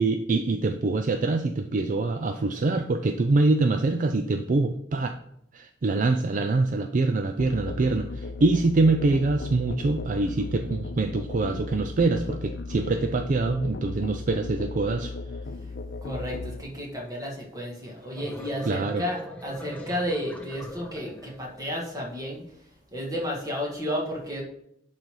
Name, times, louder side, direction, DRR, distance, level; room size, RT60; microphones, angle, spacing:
voice 1, 0.0-5.1 5.5-15.1 18.6-19.0, right 3 dB, 45° right, 7 dB, 0.4 m, -24 dB
Musical instrument, 7.4-16.6, left 3 dB, 70° left, 0.6 m, -36 dB
voice 2, 16.0-22.4 22.9-24.4, equal, 20° right, -2 dB, 1.9 m, -32 dB
sound 1, 17.9-21.8, equal, 10° left, 1.0 m, -41 dB
10.5 x 4.0 x 4.7 m, 0.75 s
head